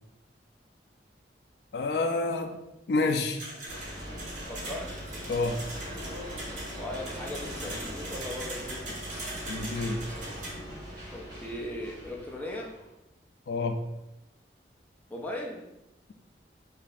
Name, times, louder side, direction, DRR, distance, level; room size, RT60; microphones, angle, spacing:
voice 1, 1.7-2.6 2.9-3.4 5.3-5.6 9.5-10.0 13.5-13.8, left 3 dB, 65° left, 6 dB, 0.3 m, -28 dB
sound 1, 3.4-10.5, right 1 dB, 45° right, 1.0 m, -41 dB
sound 2, 3.7-12.9, equal, 25° right, 1.1 m, -41 dB
voice 2, 4.4-5.0 6.8-9.0 11.1-12.8 15.1-15.7, left 1 dB, 10° left, -2 dB, 0.5 m, -38 dB
3.1 x 2.7 x 4.1 m, 0.93 s
head